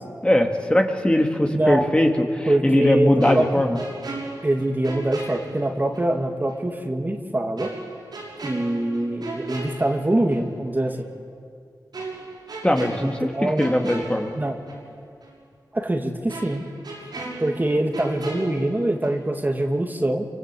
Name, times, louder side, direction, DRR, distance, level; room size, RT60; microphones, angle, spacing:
voice 1, 0.2-3.8 12.6-14.3, left 1 dB, 15° left, 3 dB, 2.4 m, -20 dB
voice 2, 1.5-1.9 2.5-3.6 4.4-7.7 8.4-11.1 13.0-13.7 14.4-14.6 15.7-16.6 17.4-20.3, right 1 dB, 25° right, 3 dB, 2.3 m, -24 dB
sound 1, 3.2-6.1 6.5-6.6 7.6-10.5 10.8-11.0 11.9-14.9 15.2-15.3 16.3-19.3 19.6-19.8, right 3 dB, 85° right, 6.2 m, -36 dB
27.0 x 25.0 x 8.4 m, 2.2 s
wide cardioid pair, 70°, 7 cm